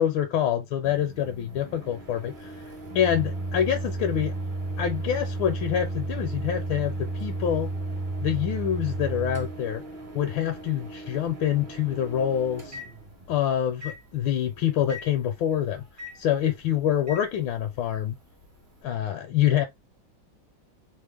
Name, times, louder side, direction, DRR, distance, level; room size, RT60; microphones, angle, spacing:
voice 1, 0.0-2.5 2.9-4.3 4.8-7.7 8.2-9.8 10.1-12.8 13.3-15.8 16.2-18.2 18.8-19.6, left 10 dB, 80° left, 1.4 m, -26 dB
Microwave oven, 0.8-13.4 13.8-14.0 14.9-15.1 16.0-16.2 17.1-17.2, right 2 dB, 40° right, 0.7 m, -34 dB
3.4 x 2.1 x 3.3 m
omnidirectional pair, 2.2 m